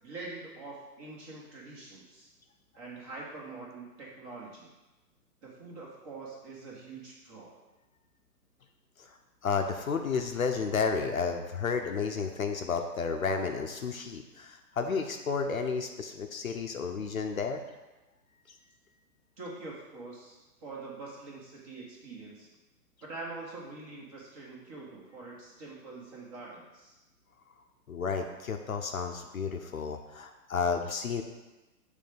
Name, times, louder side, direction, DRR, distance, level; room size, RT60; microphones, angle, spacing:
voice 1, 0.0-2.3 2.7-4.7 5.4-7.5 19.4-22.5 23.0-26.9, right 3 dB, 20° right, -3 dB, 1.2 m, -44 dB
voice 2, 9.4-17.6 27.9-31.2, left 5 dB, 55° left, 5 dB, 0.7 m, -32 dB
7.6 x 3.5 x 5.0 m, 1.1 s
figure-of-eight pair, 130°, 50 cm